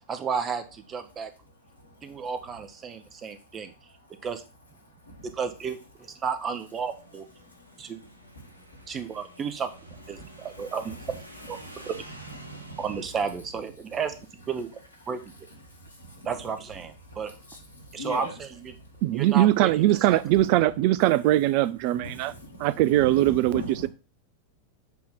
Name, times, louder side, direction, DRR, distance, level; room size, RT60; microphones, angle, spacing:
voice 1, 0.1-1.3 2.0-3.7 4.2-4.4 5.2-7.2 7.8-8.0 8.9-9.7 10.1-11.2 11.5-11.9 12.8-14.1 14.5-14.7 15.1-15.3 16.2-17.3 17.9-18.8 19.1-20.2, right 6 dB, 25° right, 0.8 m, -32 dB
voice 2, 1.7-2.3 2.9-3.2 3.6-3.7 4.0-4.3 4.8-5.3 7.4-9.0 10.1-11.0 11.6-11.9 12.4-12.9 15.6-16.3 17.0-18.3 18.7-19.0 20.3-20.5 22.0-23.9, equal, 80° left, 1.6 m, -42 dB
Motorcycle / Engine, 6.6-13.6, right 1 dB, 85° right, 0.8 m, -49 dB
voice 3, 19.0-22.3 22.6-23.9, right 15 dB, 45° right, 0.3 m, -21 dB
7.4 x 2.9 x 5.6 m
figure-of-eight pair, 90°, 0 cm